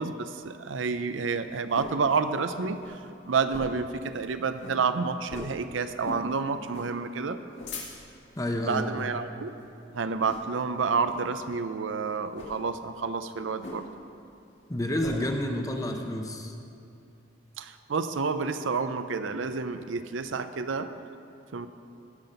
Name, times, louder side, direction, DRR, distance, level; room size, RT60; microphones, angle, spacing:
voice 1, 0.0-3.0 3.3-7.4 8.6-9.5 9.9-13.8 17.6-20.9 21.5-21.7, right 5 dB, 75° right, 10 dB, 0.5 m, -29 dB
sound 1, 0.8-2.0 2.4-2.5 2.7-3.0 3.4-3.9 4.2-4.3 4.6-4.8 5.3-5.6 6.0-6.3 6.7-6.9 7.3-8.2 8.8-9.1 9.6-9.8 10.2-10.6 11.0-11.3 12.3-12.6 13.6-14.1 14.4-15.2, left 2 dB, 65° left, 2.3 m, -41 dB
voice 2, 8.4-8.8 14.7-16.5, left 1 dB, 20° left, 4 dB, 0.8 m, -29 dB
17.5 x 5.8 x 5.4 m, 2.6 s
head